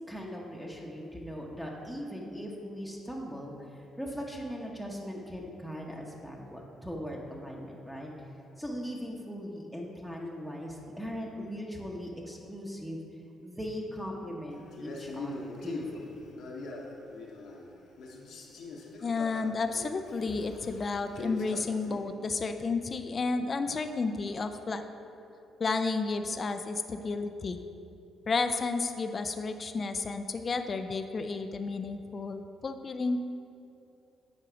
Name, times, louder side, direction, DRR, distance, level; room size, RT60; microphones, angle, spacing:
voice 1, 0.1-8.1 8.6-13.0 13.4-16.2, equal, 5° right, -2 dB, 1.0 m, -39 dB
Male speech man speaking, 14.7-17.7 18.0-22.1, left 2 dB, 75° left, 1.0 m, -42 dB
voice 2, 19.0-24.8 25.6-27.6 28.3-33.3, left 4 dB, 40° left, 8 dB, 0.4 m, -32 dB
7.7 x 4.5 x 5.0 m, 2.7 s
cardioid pair, 90°, 0 cm